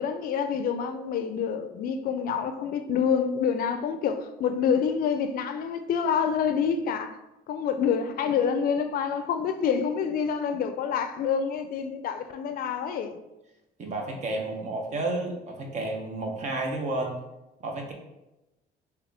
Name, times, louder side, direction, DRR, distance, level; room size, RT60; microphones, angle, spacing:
voice 1, 0.0-7.2 7.5-13.2, left 7 dB, 60° left, 0.4 m, -27 dB
voice 2, 13.8-17.2 17.6-17.9, right 2 dB, 45° right, 0.8 m, -31 dB
3.7 x 2.8 x 3.4 m
cardioid pair, 110°, 17 cm